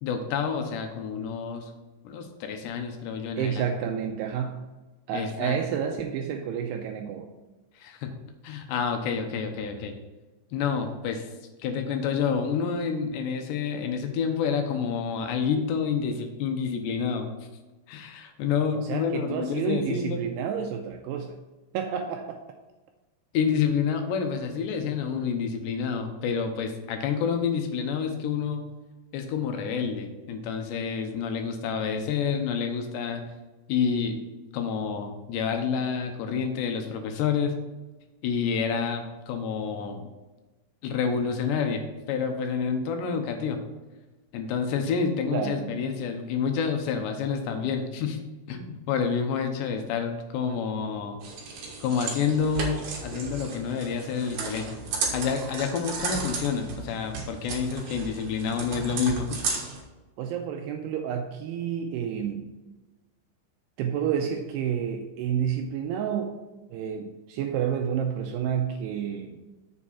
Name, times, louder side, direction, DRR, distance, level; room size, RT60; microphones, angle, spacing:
voice 1, 0.0-1.7 2.0-3.6 5.1-5.6 7.8-8.1 8.4-9.9 10.5-11.3 11.6-17.3 17.9-20.2 23.3-28.6 29.1-33.3 33.7-34.2 34.5-37.5 38.2-40.0 40.8-41.8 42.1-43.6 44.3-48.2 48.5-51.2 51.8-54.8 55.1-59.3, left 6 dB, 80° left, 3.0 m, -28 dB
voice 2, 3.4-4.6 5.1-7.3 18.8-21.4 21.7-22.5 45.3-45.9 60.2-62.5 63.8-66.4 66.7-69.4, right 8 dB, 80° right, 2.4 m, -30 dB
sound 1, 51.2-59.8, right 4 dB, 60° right, 2.0 m, -34 dB
7.3 x 7.2 x 4.2 m
omnidirectional pair, 5.2 m